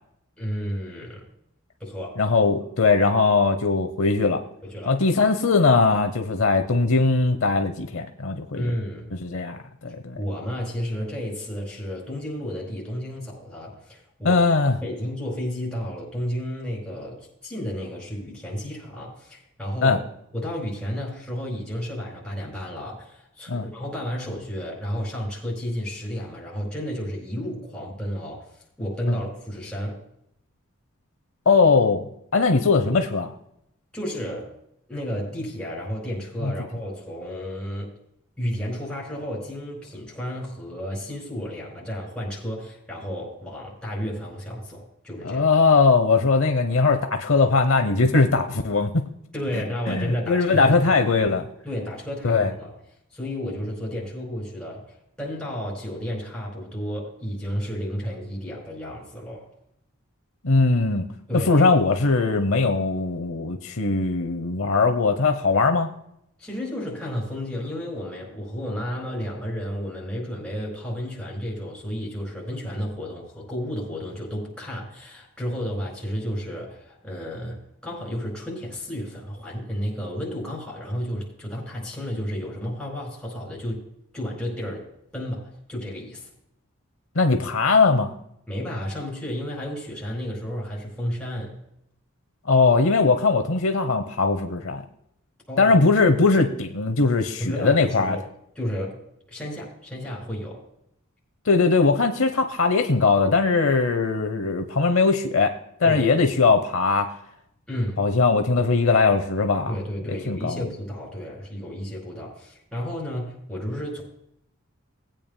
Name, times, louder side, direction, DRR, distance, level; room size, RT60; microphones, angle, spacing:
voice 1, 0.4-1.3 1.8-2.2 4.6-5.0 8.5-9.1 10.2-14.4 14.8-20.0 20.3-28.5 28.8-30.0 33.9-34.5 34.9-37.9 38.4-45.4 49.3-52.8 53.1-59.5 61.3-61.7 66.4-83.9 84.1-84.9 85.1-86.3 88.5-91.6 95.5-95.7 97.4-98.2 98.5-99.0 99.3-100.6 105.8-106.1 107.7-108.0 109.7-114.0, equal, 5° left, -4 dB, 4.8 m, -32 dB
voice 2, 2.2-4.4 4.9-8.7 9.2-10.2 14.2-14.8 19.8-20.0 23.5-23.7 29.1-29.2 31.5-32.1 32.3-33.3 36.4-36.5 45.2-49.0 49.9-51.5 52.2-52.5 60.4-61.1 61.3-65.9 87.2-88.1 92.5-94.8 95.6-98.2 101.5-105.5 105.8-107.1 108.0-109.7 110.3-110.6, left 4 dB, 65° left, 7 dB, 0.8 m, -20 dB
20.0 x 8.9 x 2.2 m, 0.76 s
head